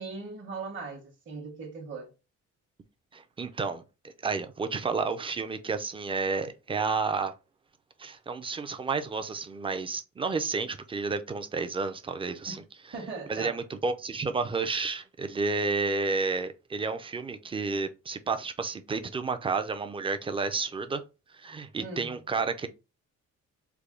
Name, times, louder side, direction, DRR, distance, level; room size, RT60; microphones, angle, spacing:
voice 1, 0.0-2.1 12.4-12.6 12.9-13.6 21.8-22.1, right 4 dB, 40° right, 1.0 m, -39 dB
voice 2, 3.1-7.3 8.0-12.6 13.3-21.0 21.3-22.7, right 4 dB, 20° right, 0.4 m, -31 dB
3.4 x 2.2 x 3.6 m
cardioid pair, 110°, 30 cm